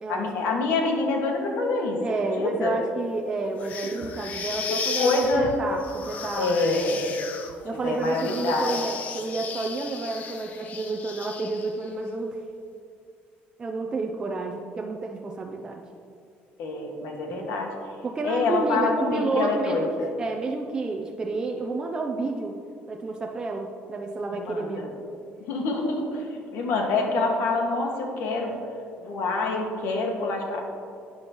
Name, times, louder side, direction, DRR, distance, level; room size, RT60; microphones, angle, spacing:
voice 1, 0.1-2.0 2.4-2.8 5.0-5.6 6.3-7.1 7.8-8.8 16.6-17.7 18.2-20.1 24.3-24.9 25.4-28.5 29.0-30.6, left 3 dB, 85° left, 1 dB, 1.8 m, -26 dB
voice 2, 2.0-6.6 7.6-12.4 13.6-15.8 17.3-17.5 18.0-19.9 20.2-22.6 22.9-24.9, right 3 dB, 20° right, 1 dB, 0.5 m, -30 dB
sound 1, 3.6-11.9, left 5 dB, 40° left, 0.8 m, -35 dB
11.5 x 9.6 x 3.1 m, 2.5 s
cardioid pair, 165°, 4 cm